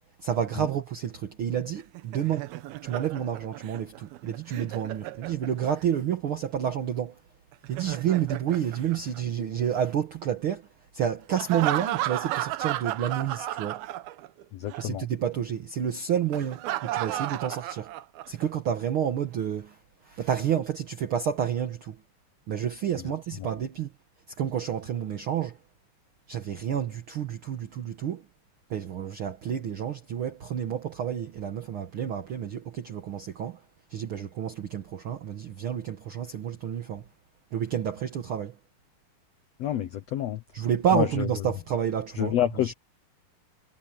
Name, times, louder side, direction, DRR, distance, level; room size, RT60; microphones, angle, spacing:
voice 1, 0.2-2.5 2.8-7.2 7.7-13.8 14.7-17.9 18.3-19.8 20.0-22.0 22.5-23.9 24.4-25.6 26.3-28.3 28.7-33.6 33.9-37.0 37.5-38.6 40.5-42.7, right 9 dB, 65° right, 1.3 m, -30 dB
Laughter, 1.8-5.8 7.5-9.7 11.4-14.4 14.7-14.8 16.3-18.4, right 14 dB, 90° right, 2.9 m, -33 dB
voice 2, 14.5-15.0 39.6-40.4 40.9-41.1 42.2-42.7, left 11 dB, 85° left, 1.5 m, -27 dB
omnidirectional pair, 4.2 m